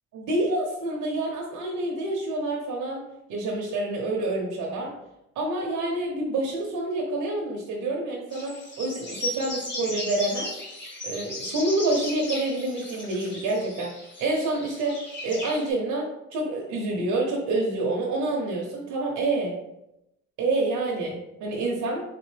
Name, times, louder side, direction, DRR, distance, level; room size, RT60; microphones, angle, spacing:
voice 1, 0.1-3.0 3.3-4.9 5.4-10.5 11.0-13.9 14.2-15.0 15.2-19.6 20.4-22.0, right 2 dB, 85° right, -2 dB, 0.9 m, -27 dB
sound 1, 8.3-15.7, left 1 dB, 35° left, 1.6 m, -36 dB
3.9 x 3.8 x 3.3 m, 0.87 s
cardioid pair, 90°, 30 cm